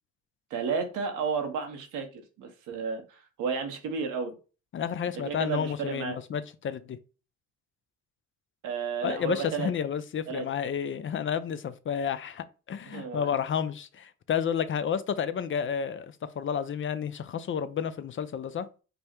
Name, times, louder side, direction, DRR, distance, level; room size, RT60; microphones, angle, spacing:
voice 1, 0.5-4.3 5.2-6.2 8.6-9.7 10.3-10.4 12.8-13.3, right 5 dB, 85° right, 1.1 m, -32 dB
voice 2, 4.7-7.0 9.0-18.7, left 7 dB, 40° left, 0.5 m, -31 dB
5.2 x 2.1 x 4.4 m
cardioid pair, 90°, 30 cm